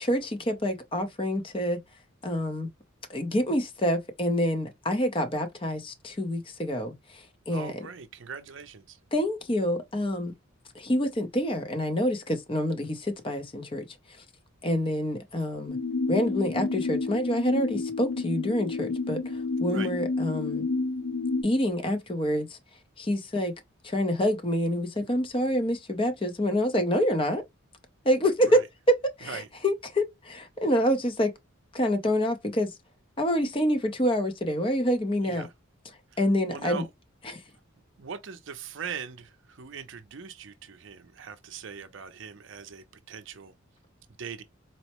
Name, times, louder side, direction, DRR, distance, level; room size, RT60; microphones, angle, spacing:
voice 1, 0.0-1.8 2.2-2.7 3.1-7.7 9.1-10.3 10.7-13.9 14.6-15.8 16.1-20.7 21.4-22.6 23.0-23.5 23.8-27.4 28.0-28.6 28.9-31.3 31.7-32.7 33.2-35.5 36.2-36.8 37.2-37.4, equal, 25° left, 0.6 m, -27 dB
voice 2, 7.5-9.0 19.7-19.9 28.4-28.6 29.3-29.5 35.2-35.5 36.1-36.2 36.5-36.9 38.0-43.5 44.2-44.4, right 6 dB, 60° right, 0.5 m, -40 dB
sound 1, 15.7-21.4, left 3 dB, 70° left, 0.6 m, -30 dB
4.2 x 2.0 x 2.9 m
head